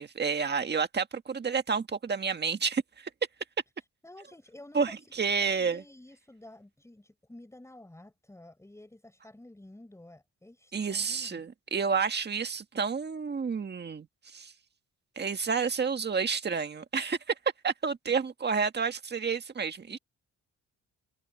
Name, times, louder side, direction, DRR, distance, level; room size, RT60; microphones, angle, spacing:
voice 1, 0.0-2.8 4.7-4.9 5.2-5.8 10.7-14.1 14.3-14.5 15.1-17.2 17.6-20.0, right 5 dB, 35° right, 1.7 m, -30 dB
voice 2, 4.0-11.4, left 1 dB, 10° left, 6.3 m, -51 dB
cardioid pair, 120°, 31 cm